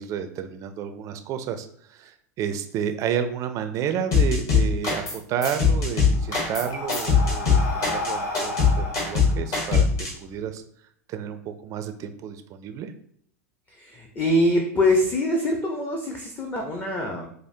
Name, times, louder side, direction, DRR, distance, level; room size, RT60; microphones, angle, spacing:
voice 1, 0.0-10.6 11.1-12.9, right 8 dB, 40° right, 8 dB, 0.4 m, -31 dB
sound 1, 4.1-5.2 5.4-10.1, left 5 dB, 45° left, 1.3 m, -21 dB
Breathing, 5.6-10.3, left 2 dB, 60° left, 0.7 m, -33 dB
voice 2, 13.7-17.3, left 1 dB, 20° left, 1 dB, 0.6 m, -24 dB
4.9 x 2.0 x 2.7 m, 0.64 s
hypercardioid pair, 90°, 9 cm